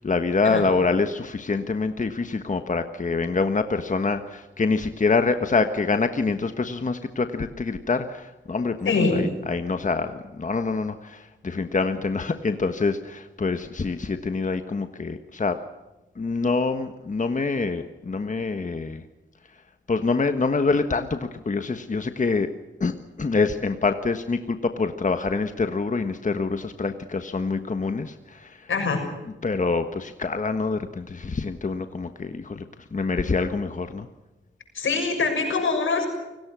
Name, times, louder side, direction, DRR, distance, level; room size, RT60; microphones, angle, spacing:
voice 1, 0.0-15.6 16.2-19.0 19.9-22.5 22.8-22.9 23.2-28.7 29.4-32.6 32.9-34.1, left 4 dB, 40° left, 8 dB, 1.4 m, -26 dB
voice 2, 8.8-9.3 28.7-29.0 34.7-36.1, left 4 dB, 85° left, 4 dB, 6.6 m, -23 dB
29.0 x 19.0 x 6.3 m, 1.1 s
wide cardioid pair, 80°, 20 cm